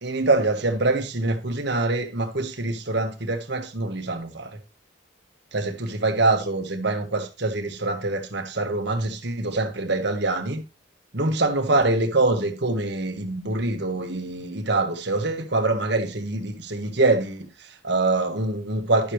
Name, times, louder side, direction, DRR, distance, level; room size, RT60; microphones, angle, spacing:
voice 1, 0.0-4.6 5.5-10.6 11.1-19.1, right 2 dB, 55° right, 1.6 m, -24 dB
11.0 x 6.8 x 3.1 m
head